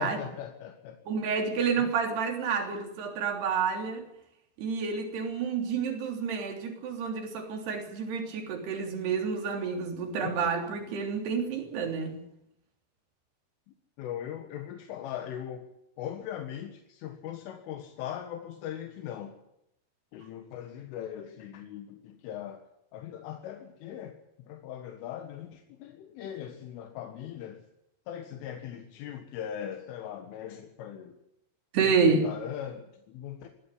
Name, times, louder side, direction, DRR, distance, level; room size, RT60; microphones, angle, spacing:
voice 1, 0.0-1.0 1.8-1.9 10.2-10.4 10.9-11.0 14.0-15.7 16.0-19.4 20.1-22.6 22.9-24.2 24.5-27.6 28.1-31.2 32.0-33.5, left 10 dB, 80° left, 4.1 m, -40 dB
voice 2, 1.1-4.0 4.6-12.2 31.7-32.3, right 5 dB, 60° right, 5.2 m, -29 dB
21.0 x 16.0 x 9.9 m
omnidirectional pair, 5.7 m